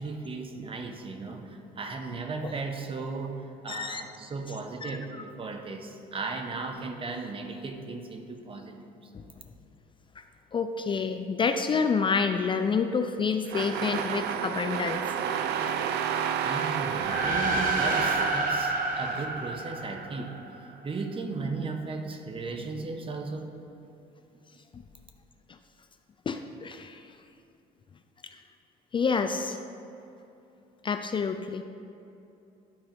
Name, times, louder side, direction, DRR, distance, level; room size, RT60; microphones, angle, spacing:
voice 1, 0.0-8.9 16.4-20.6 20.8-23.5, right 3 dB, 30° right, 5 dB, 0.9 m, -36 dB
voice 2, 3.7-4.0 4.8-5.0 10.5-15.0 24.7-24.8 26.3-27.0 28.9-29.6 30.8-31.6, left 5 dB, 30° left, 7 dB, 0.4 m, -28 dB
sound 1, 13.5-19.2, right 8 dB, 80° right, 0.6 m, -31 dB
sound 2, 16.9-20.6, right 2 dB, 55° right, 1.2 m, -29 dB
12.0 x 4.4 x 5.2 m, 2.8 s
cardioid pair, 110°, 17 cm